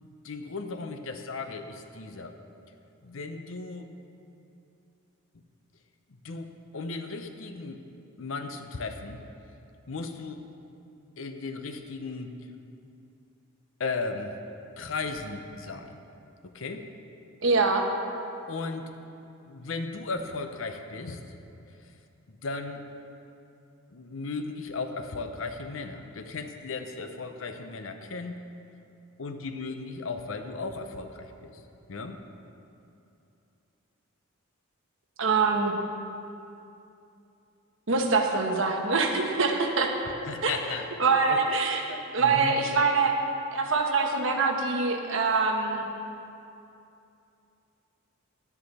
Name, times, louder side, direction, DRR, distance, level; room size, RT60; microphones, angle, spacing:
voice 1, 0.0-2.4 3.0-3.9 6.2-7.8 8.2-9.2 9.9-10.5 11.2-12.4 13.8-14.4 14.8-16.0 16.4-16.9 18.5-18.9 19.4-21.2 21.7-21.9 22.3-22.8 23.9-28.4 29.2-31.6 31.9-32.2 40.3-40.9 41.3-41.4 42.2-42.6, left 3 dB, 65° left, 7 dB, 0.7 m, -36 dB
voice 2, 17.4-17.8 35.2-35.7 37.9-39.9 40.4-40.5 41.0-41.8 42.1-43.1 43.5-45.9, right 4 dB, 65° right, 2 dB, 1.1 m, -24 dB
11.5 x 9.7 x 4.2 m, 2.7 s
head